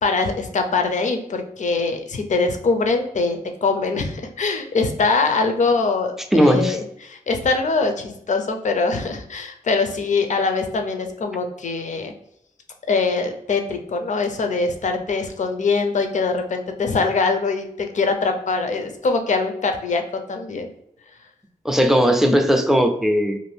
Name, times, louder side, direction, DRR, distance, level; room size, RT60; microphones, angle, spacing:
voice 1, 0.0-12.1 12.9-20.7, left 4 dB, 55° left, 5 dB, 0.5 m, -23 dB
voice 2, 6.3-6.8 21.6-23.4, equal, 5° right, 5 dB, 0.4 m, -17 dB
2.6 x 2.5 x 3.3 m, 0.78 s
wide cardioid pair, 110°, 15 cm